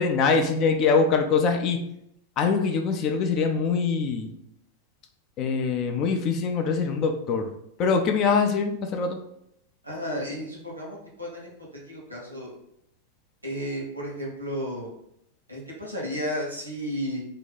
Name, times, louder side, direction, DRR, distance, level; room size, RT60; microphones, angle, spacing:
voice 1, 0.0-1.8 2.4-4.3 5.4-7.5 7.8-9.2, left 5 dB, 35° left, 5 dB, 0.4 m, -23 dB
voice 2, 9.8-11.5 11.8-12.5 13.4-14.9 15.5-17.2, equal, 85° right, -3 dB, 1.0 m, -33 dB
2.7 x 2.1 x 3.9 m, 0.75 s
figure-of-eight pair, 90°, 0 cm